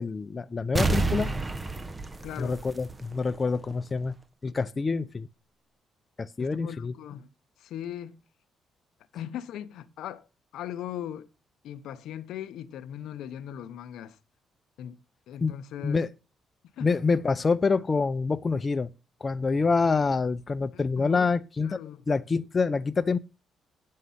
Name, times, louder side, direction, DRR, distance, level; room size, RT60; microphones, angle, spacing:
voice 1, 0.0-1.3 2.4-4.2 4.4-5.3 6.2-6.9 15.4-15.5 15.8-16.1 16.8-18.9 19.2-21.8 22.1-23.2, left 4 dB, 30° left, 0.6 m, -26 dB
sound 1, 0.8-3.4 3.7-3.8, right 3 dB, 20° right, 0.8 m, -29 dB
voice 2, 2.2-2.6 6.4-7.3 7.6-8.2 9.1-10.2 10.5-11.3 11.6-14.2 14.8-15.0 15.3-16.0 16.8-16.9 20.7-22.0, left 10 dB, 80° left, 0.7 m, -39 dB
9.2 x 6.5 x 5.7 m
cardioid pair, 90°, 0 cm